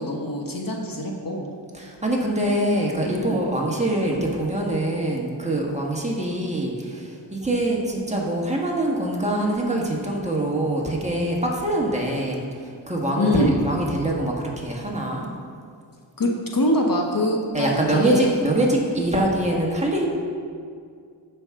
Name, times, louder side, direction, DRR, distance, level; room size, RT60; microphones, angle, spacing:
voice 1, 0.0-1.5 3.1-3.4 13.2-13.5 16.2-18.3, left 1 dB, 45° left, 1 dB, 1.2 m, -24 dB
voice 2, 1.7-15.3 17.5-20.1, right 1 dB, 15° right, -2 dB, 1.6 m, -24 dB
14.0 x 5.9 x 3.7 m, 2.2 s
wide cardioid pair, 65°, 45 cm